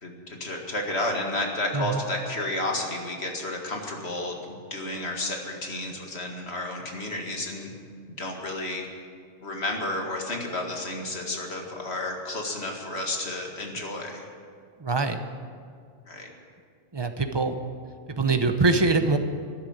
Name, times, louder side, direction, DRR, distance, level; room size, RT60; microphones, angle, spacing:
voice 1, 0.0-7.7 8.1-8.8 9.4-14.3 16.1-16.3, left 1 dB, 55° left, 1 dB, 2.2 m, -31 dB
voice 2, 14.8-15.2 16.9-17.6 18.1-19.2, right 3 dB, 25° right, 7 dB, 0.8 m, -23 dB
13.5 x 11.0 x 8.9 m, 2.1 s
omnidirectional pair, 1.3 m